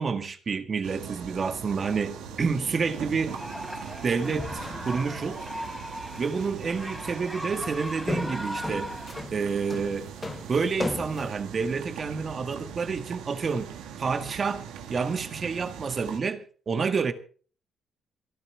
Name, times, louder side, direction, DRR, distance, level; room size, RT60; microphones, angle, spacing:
voice 1, 0.0-3.4 4.0-5.4 6.2-8.9 9.3-10.1 10.5-13.7 14.0-17.1, right 5 dB, 45° right, 1.7 m, -29 dB
sound 1, 0.8-16.2, right 8 dB, 85° right, 2.1 m, -41 dB
sound 2, 2.2-3.1 3.6-3.7 4.3-5.1 5.6-5.8 6.3-6.7 6.9-7.2 7.5-11.3, left 3 dB, 25° left, 0.6 m, -37 dB
sound 3, 3.3-9.2, equal, ahead, 3.4 m, -38 dB
25.5 x 11.0 x 3.5 m
supercardioid pair, 60°, 0 cm